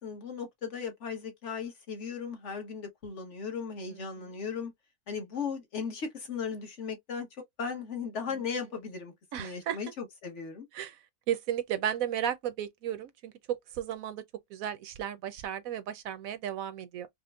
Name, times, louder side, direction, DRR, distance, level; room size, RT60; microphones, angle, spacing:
voice 1, 0.0-4.7 5.1-7.3 7.6-9.1 9.4-10.7, left 6 dB, 55° left, 1.4 m, -37 dB
voice 2, 9.3-9.8 10.7-11.0 11.3-14.2 14.5-17.1, right 10 dB, 75° right, 1.0 m, -34 dB
5.0 x 2.0 x 2.4 m
omnidirectional pair, 1.5 m